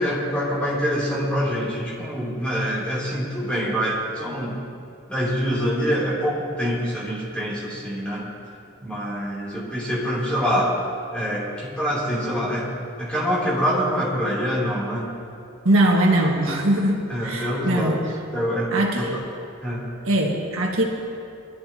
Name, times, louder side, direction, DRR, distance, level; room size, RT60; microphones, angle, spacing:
voice 1, 0.0-4.6 5.1-8.2 8.8-10.7 11.1-12.7 13.0-15.1 17.1-18.1 18.3-19.2 19.6-19.8, equal, 5° left, -8 dB, 3.1 m, -25 dB
voice 2, 15.6-18.0 18.7-19.2 20.0-20.8, right 1 dB, 70° right, -1 dB, 1.7 m, -21 dB
22.0 x 12.5 x 2.9 m, 2.5 s
head